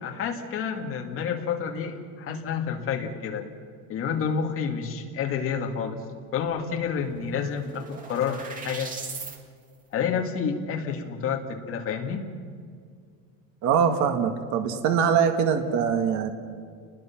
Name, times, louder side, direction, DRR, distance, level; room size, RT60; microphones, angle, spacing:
voice 1, 0.0-3.5 3.9-6.0 6.3-8.9 9.9-12.2, left 6 dB, 35° left, 2 dB, 2.4 m, -29 dB
sound 1, 6.5-6.6 6.9-9.4, right 4 dB, 20° right, 2.3 m, -39 dB
voice 2, 13.6-16.3, right 7 dB, 50° right, 5 dB, 1.8 m, -23 dB
30.0 x 20.5 x 6.0 m, 2.1 s
cardioid pair, 175°, 36 cm